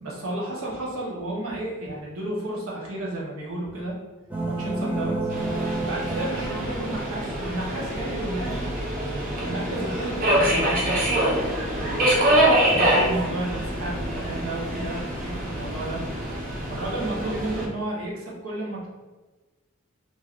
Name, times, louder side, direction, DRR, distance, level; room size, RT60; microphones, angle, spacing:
voice 1, 0.0-4.0 4.4-5.3 5.9-8.8 9.2-10.9 11.8-16.0 16.7-18.9, right 1 dB, 70° right, -4 dB, 0.9 m, -32 dB
sound 1, 4.3-8.3, right 2 dB, 5° right, 0.4 m, -31 dB
Subway metro underground, 5.3-17.7, right 1 dB, 40° right, 0.7 m, -25 dB
3.0 x 2.6 x 2.4 m, 1.2 s
head